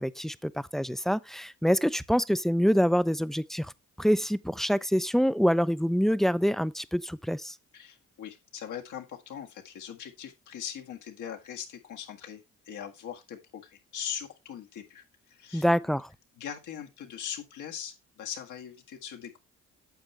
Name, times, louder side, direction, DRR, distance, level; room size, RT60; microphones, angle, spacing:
voice 1, 0.0-3.7 4.0-7.5 15.5-16.1, equal, ahead, 0.4 m, -26 dB
voice 2, 7.7-15.7 16.4-19.4, left 9 dB, 80° left, 1.8 m, -41 dB
9.1 x 7.2 x 3.2 m
cardioid pair, 90°, 30 cm